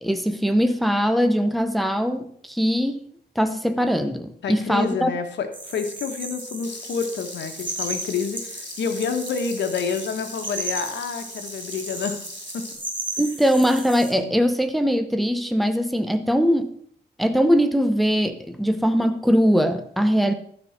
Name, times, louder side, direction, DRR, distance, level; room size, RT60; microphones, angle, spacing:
voice 1, 0.0-3.0 3.4-5.1 13.2-16.7 17.2-20.3, equal, ahead, 8 dB, 0.7 m, -21 dB
voice 2, 4.4-12.2 12.5-12.6, left 6 dB, 85° left, 6 dB, 1.4 m, -28 dB
sound 1, 5.5-14.1, right 2 dB, 25° right, 2.0 m, -34 dB
Frying (food), 6.6-12.7, left 4 dB, 70° left, 2.7 m, -43 dB
12.0 x 5.5 x 5.9 m, 0.64 s
wide cardioid pair, 145°, 18 cm